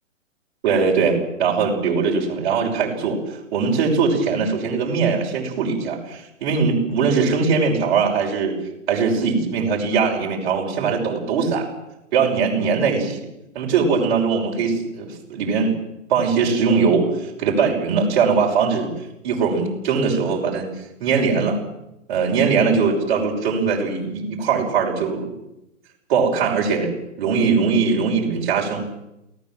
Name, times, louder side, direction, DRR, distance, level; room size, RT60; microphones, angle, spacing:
voice 1, 0.6-8.6 8.9-11.7 12.1-13.3 13.5-15.7 16.1-18.9 19.2-21.6 22.1-25.3 26.1-28.9, right 5 dB, 40° right, -1 dB, 6.0 m, -21 dB
28.5 x 18.0 x 7.7 m, 0.88 s
figure-of-eight pair, 130°, 39 cm